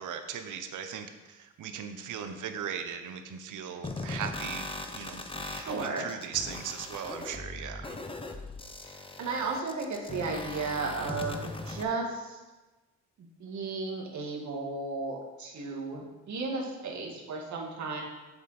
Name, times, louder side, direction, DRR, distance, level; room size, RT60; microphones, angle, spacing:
voice 1, 0.0-8.0, right 7 dB, 85° right, 7 dB, 0.9 m, -38 dB
sound 1, 3.8-11.8, left 2 dB, 20° left, 0.7 m, -39 dB
voice 2, 5.4-6.1 8.8-12.4 13.4-18.0, right 3 dB, 70° right, 0 dB, 1.9 m, -34 dB
8.2 x 7.2 x 4.2 m, 1.2 s
cardioid pair, 100°, 30 cm